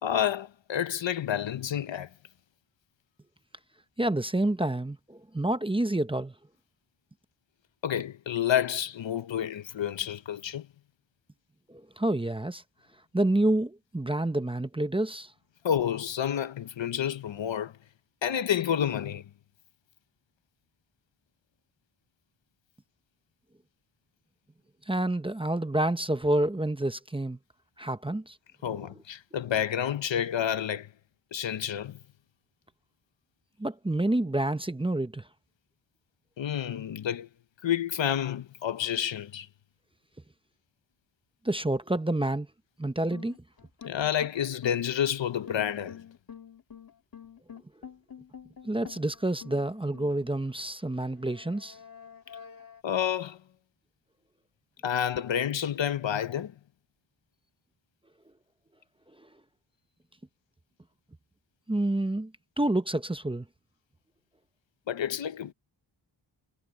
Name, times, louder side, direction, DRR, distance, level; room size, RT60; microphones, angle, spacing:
voice 1, 0.0-2.1 7.8-10.7 15.6-17.7 18.2-19.3 28.6-30.9 31.3-32.0 36.4-37.3 37.6-39.5 43.8-46.0 52.8-53.4 54.8-56.5 64.9-65.5, left 9 dB, 70° left, 0.9 m, -29 dB
voice 2, 4.0-6.3 11.7-12.6 13.1-15.3 24.9-27.4 27.8-28.4 33.6-35.2 41.4-42.5 42.8-43.4 48.6-51.8 61.7-62.3 62.6-63.5, right 1 dB, 10° right, 0.7 m, -28 dB
sound 1, 43.1-50.6 51.2-52.8, left 7 dB, 50° left, 1.8 m, -48 dB
wide cardioid pair, 125°, 46 cm